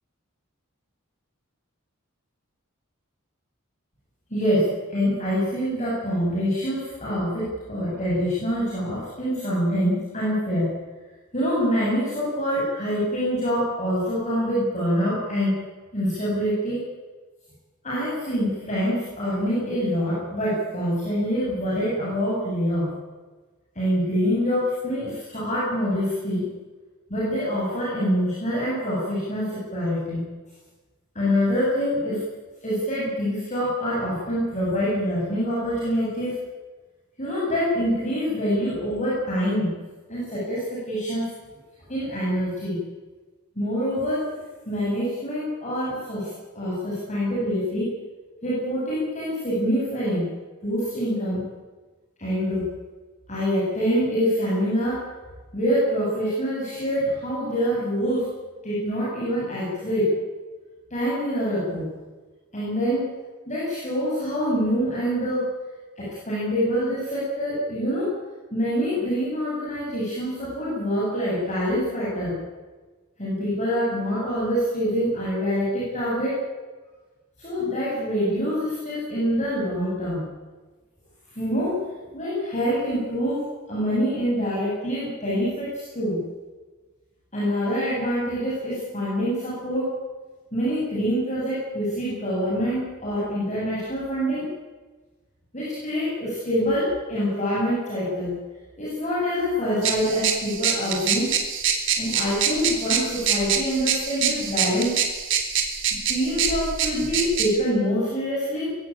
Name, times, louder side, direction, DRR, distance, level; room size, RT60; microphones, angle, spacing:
voice 1, 4.3-10.7 11.3-15.6 15.9-16.8 17.8-22.9 23.7-26.5 27.1-30.2 31.1-32.2 32.6-36.4 37.2-39.8 40.1-41.3 41.9-42.8 43.6-44.3 44.7-47.9 48.4-50.3 50.6-51.4 52.2-52.7 53.3-55.0 55.5-58.3 58.6-60.1 60.9-61.9 62.5-63.1 63.5-65.5 66.0-68.1 68.5-72.4 73.2-76.4 77.4-80.3 81.3-81.8 82.1-86.2 87.3-89.9 90.5-94.5 95.5-98.4 98.8-101.3 102.0-105.0 106.1-108.8, equal, 35° left, -7 dB, 8.0 m, -25 dB
sound 1, 99.8-107.5, right 7 dB, 60° right, 3.4 m, -25 dB
22.5 x 16.5 x 8.9 m, 1.3 s
head